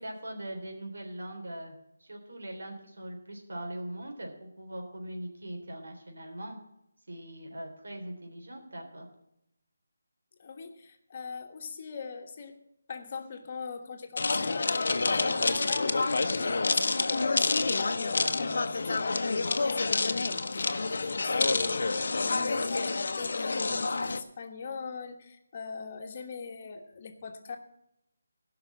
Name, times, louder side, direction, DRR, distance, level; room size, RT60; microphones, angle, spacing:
voice 1, 0.0-1.7 2.0-6.6 7.1-9.1, right 1 dB, 75° right, 2 dB, 3.5 m, -41 dB
voice 2, 10.4-12.6 12.9-27.6, left 5 dB, 40° left, 5 dB, 1.4 m, -41 dB
sound 1, 14.2-24.2, left 3 dB, 65° left, 0.9 m, -28 dB
15.5 x 5.9 x 7.4 m, 0.83 s
figure-of-eight pair, 165°, 0 cm